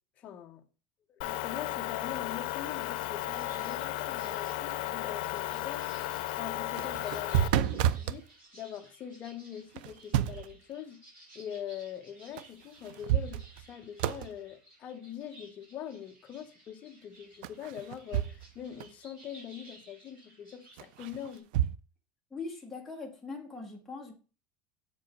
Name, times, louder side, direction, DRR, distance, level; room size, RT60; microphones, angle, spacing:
voice 1, 0.2-0.6 1.1-8.3 8.5-11.0 11.3-21.5, left 9 dB, 30° left, 0.8 m, -43 dB
Motor vehicle (road) / Engine, 1.2-7.5, left 15 dB, 85° left, 0.6 m, -35 dB
sound 1, 3.3-21.4, right 1 dB, 30° right, 5.0 m, -57 dB
sound 2, 6.6-8.2 9.7-10.6 12.4-12.5 12.8-13.7 14.0-14.3 17.4-18.5 18.8-18.9 20.8-21.8, right 11 dB, 70° right, 0.4 m, -30 dB
voice 2, 22.3-24.1, left 3 dB, 5° left, 1.4 m, -41 dB
7.5 x 4.9 x 5.2 m
cardioid pair, 175°, 5 cm